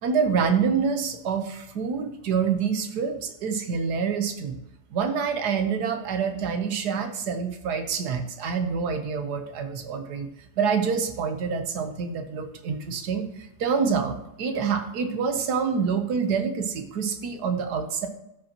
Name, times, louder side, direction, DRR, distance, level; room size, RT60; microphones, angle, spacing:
voice 1, 0.0-4.6 4.9-10.3 10.6-18.1, right 6 dB, 70° right, 7 dB, 1.5 m, -27 dB
13.5 x 5.3 x 2.9 m, 0.85 s
omnidirectional pair, 1.8 m